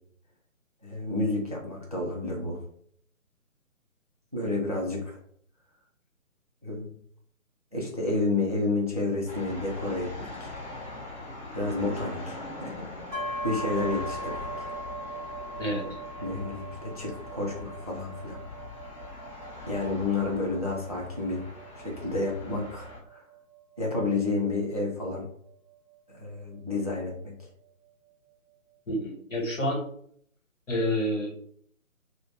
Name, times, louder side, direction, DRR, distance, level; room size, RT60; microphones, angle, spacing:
voice 1, 0.8-2.6 4.3-5.2 6.6-6.9 7.7-10.5 11.5-12.8 13.4-14.7 16.2-18.4 19.7-21.4 21.8-23.2 23.8-25.3 26.1-27.3, left 2 dB, 30° right, -1 dB, 0.4 m, -30 dB
sound 1, 9.3-23.0, left 2 dB, 25° left, 1.1 m, -42 dB
sound 2, 13.1-26.8, right 1 dB, ahead, 1.1 m, -41 dB
voice 2, 28.9-29.8 30.7-31.3, equal, 60° left, 1 dB, 1.4 m, -28 dB
2.7 x 2.1 x 3.9 m, 0.63 s
figure-of-eight pair, 150°, 42 cm